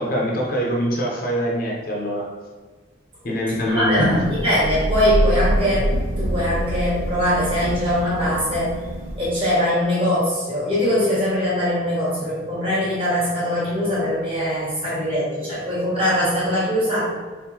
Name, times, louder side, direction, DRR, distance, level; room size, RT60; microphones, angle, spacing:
voice 1, 0.0-2.3 3.2-4.1, equal, 45° left, -2 dB, 0.5 m, -23 dB
voice 2, 3.7-5.9 6.2-8.8 9.2-17.0, equal, 25° right, -8 dB, 1.1 m, -21 dB
Thunder / Rain, 3.7-9.5, right 1 dB, 80° right, 0.4 m, -26 dB
3.5 x 2.4 x 2.8 m, 1.4 s
head